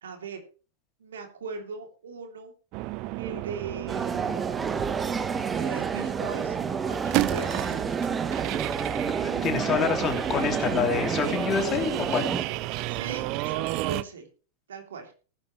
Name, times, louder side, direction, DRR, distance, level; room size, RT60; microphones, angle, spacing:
voice 1, 0.0-0.4 1.0-2.5 3.2-4.4 5.5-6.6 6.8-7.7 12.9-14.3 14.7-15.1, right 4 dB, 65° right, 4 dB, 3.0 m, -39 dB
sound 1, 2.7-14.0, right 18 dB, 40° right, 0.6 m, -32 dB
sound 2, 3.9-12.4, right 5 dB, 15° right, 1.0 m, -30 dB
voice 2, 9.2-12.3, left 6 dB, 30° left, 4 dB, 3.1 m, -27 dB
18.5 x 10.5 x 3.1 m, 0.36 s
figure-of-eight pair, 90°, 0 cm